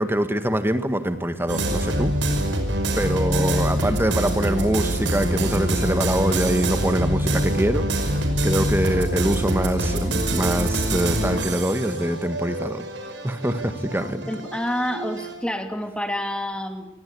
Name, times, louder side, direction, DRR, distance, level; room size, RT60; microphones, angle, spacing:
voice 1, 0.0-2.1 2.9-12.9 13.2-14.3, right 1 dB, 10° right, 10 dB, 1.8 m, -24 dB
sound 1, 1.5-15.3, right 1 dB, 75° right, 5.5 m, -25 dB
voice 2, 14.3-16.9, equal, 5° left, 6 dB, 2.6 m, -28 dB
27.0 x 22.5 x 8.6 m, 0.93 s
head